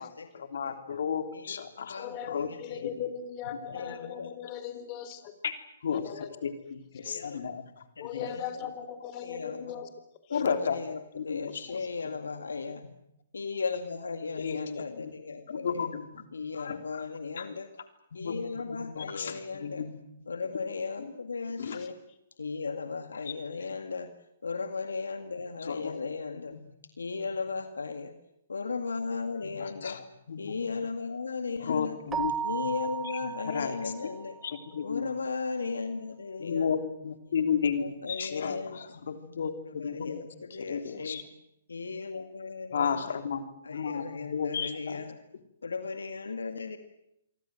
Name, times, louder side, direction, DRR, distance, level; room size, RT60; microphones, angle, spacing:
voice 1, 0.0-2.5 2.8-3.0 5.4-5.5 5.8-7.8 8.1-8.3 10.3-10.8 11.2-11.7 12.0-12.2 14.3-15.1 15.5-16.2 16.5-16.8 17.4-17.5 18.1-18.4 18.7-20.0 21.6-21.8 25.7-26.0 26.5-26.7 29.4-30.5 31.6-32.3 32.6-32.7 33.4-33.8 34.4-35.0 36.4-40.2 40.6-41.2 42.7-43.4 43.7-44.0 44.3-45.0, left 7 dB, 65° left, 7 dB, 3.4 m, -33 dB
voice 2, 1.3-2.9 3.7-4.3 7.0-7.4 8.0-8.7 9.2-9.9 10.3-12.9 13.3-15.9 16.3-17.7 18.1-19.9 20.3-22.0 22.4-24.1 24.4-26.6 27.0-28.1 28.5-30.0 30.4-32.0 32.4-34.4 34.8-36.7 37.3-38.8 39.7-41.3 41.7-43.2 43.6-45.2 45.6-46.8, left 4 dB, 85° left, 7 dB, 2.0 m, -36 dB
voice 3, 2.0-5.3 5.9-6.4 7.0-7.2 8.0-9.9 10.3-10.4 21.7-21.9, left 8 dB, 35° left, 10 dB, 3.8 m, -39 dB
Keyboard (musical), 32.1-34.6, right 7 dB, 15° right, 0.9 m, -35 dB
28.0 x 23.5 x 7.8 m, 0.81 s
hypercardioid pair, 130°, 0 cm